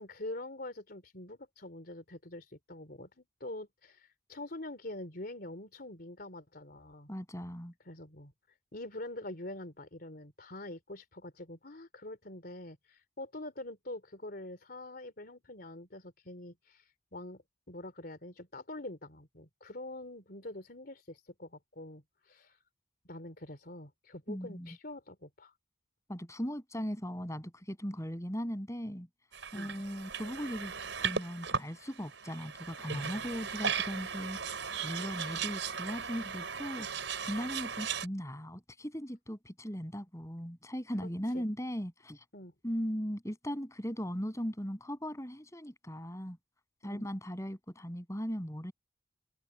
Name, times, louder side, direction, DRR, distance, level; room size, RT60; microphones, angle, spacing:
voice 1, 0.0-7.1 7.9-8.3 8.7-17.4 17.7-22.6 23.1-25.5 29.5-29.7 35.0-35.5 41.0-41.1 41.3-41.5 42.3-42.5 46.8-47.1, left 1 dB, 55° left, 3.5 m, -45 dB
voice 2, 7.1-7.7 24.3-24.8 26.1-29.1 29.5-30.7 31.0-34.4 34.8-36.9 37.3-42.2 42.6-46.4 46.8-48.7, equal, 15° left, 7.6 m, -38 dB
sound 1, 29.3-38.1, right 6 dB, 90° right, 5.2 m, -37 dB
head